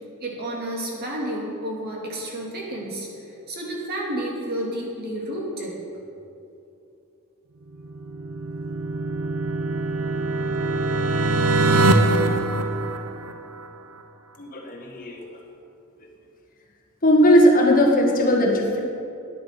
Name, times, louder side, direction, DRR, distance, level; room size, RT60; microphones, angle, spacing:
voice 1, 0.2-5.8, right 1 dB, 45° right, -2 dB, 2.6 m, -31 dB
sound 1, 7.8-13.6, right 2 dB, 85° right, 0.9 m, -23 dB
voice 2, 14.4-15.3 17.0-18.8, equal, 40° left, -1 dB, 1.8 m, -18 dB
13.5 x 10.0 x 6.0 m, 2.7 s
head